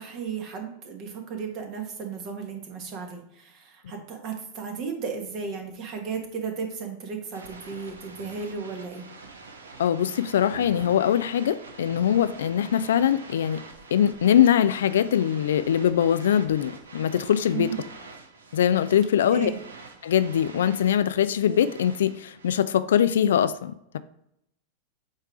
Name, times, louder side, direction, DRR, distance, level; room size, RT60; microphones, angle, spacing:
voice 1, 0.0-9.0 17.5-17.8 19.3-19.6, right 5 dB, 40° right, 3 dB, 1.6 m, -34 dB
sound 1, 7.3-22.6, right 3 dB, 70° right, 1.1 m, -45 dB
voice 2, 9.8-13.6 13.9-17.7 18.5-19.5 20.0-24.0, left 9 dB, 60° left, 13 dB, 0.4 m, -22 dB
8.4 x 3.3 x 4.8 m, 0.78 s
figure-of-eight pair, 90°, 0 cm